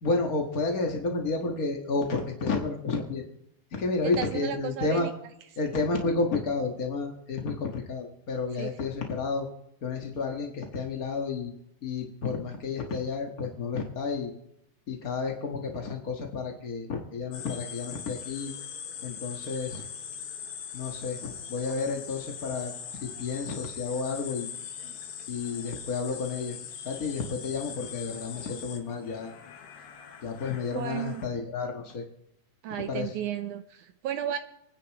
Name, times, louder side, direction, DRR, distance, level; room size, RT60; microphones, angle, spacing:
voice 1, 0.0-3.2 3.7-5.1 5.6-9.5 9.8-11.5 11.8-14.3 14.9-18.5 19.0-19.8 20.7-24.5 25.3-26.6 26.8-29.3 30.2-32.0 32.8-33.2, left 4 dB, 60° left, 2 dB, 0.9 m, -31 dB
voice 2, 4.2-5.1 8.6-8.7 30.7-31.2 32.6-34.4, right 10 dB, 75° right, 8 dB, 1.9 m, -33 dB
sound 1, 17.3-31.2, left 8 dB, 90° left, 3.4 m, -41 dB
29.5 x 10.0 x 3.1 m, 0.78 s
omnidirectional pair, 4.3 m